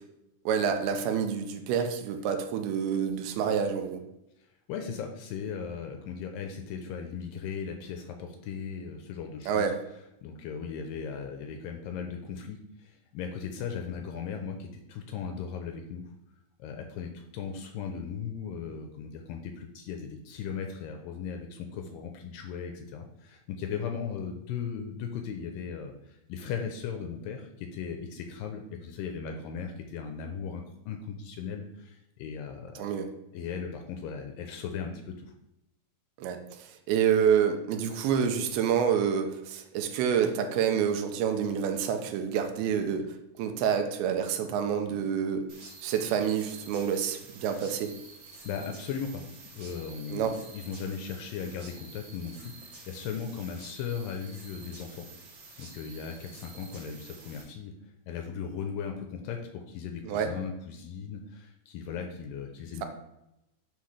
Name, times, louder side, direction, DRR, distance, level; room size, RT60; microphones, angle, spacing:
voice 1, 0.5-4.0 9.5-9.8 32.8-33.1 36.2-43.1 43.4-45.4 45.8-47.9 50.1-50.4 60.0-60.3, right 7 dB, 85° right, 6 dB, 2.5 m, -28 dB
voice 2, 4.7-9.7 10.2-16.0 16.6-32.8 33.3-35.3 48.5-49.2 49.5-55.1 55.6-57.7 58.1-62.8, left 6 dB, 80° left, 4 dB, 2.1 m, -37 dB
sound 1, 45.5-57.4, right 3 dB, 65° right, 1.2 m, -49 dB
9.5 x 4.0 x 3.3 m, 0.86 s
omnidirectional pair, 4.4 m